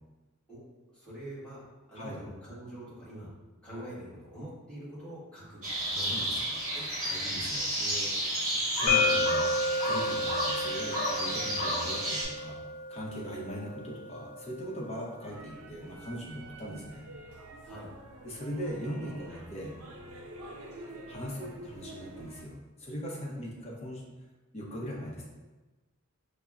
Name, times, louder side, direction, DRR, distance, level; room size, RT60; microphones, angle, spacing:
voice 1, 0.9-3.3 3.6-6.9 7.2-7.5 11.4-11.6 17.6-17.9, right 1 dB, 5° left, -10 dB, 1.3 m, -45 dB
sound 1, 5.6-12.2, equal, 40° right, 1.1 m, -31 dB
voice 2, 6.1-6.5 7.0-9.5 9.8-12.6 12.9-17.1 18.2-19.7 21.1-24.0 24.5-25.3, equal, 30° left, -3 dB, 0.7 m, -40 dB
sound 2, 8.9-14.7, left 2 dB, 70° left, 0.6 m, -31 dB
sound 3, 15.2-22.4, right 1 dB, 85° right, 0.5 m, -47 dB
5.4 x 2.1 x 2.4 m, 1.2 s
head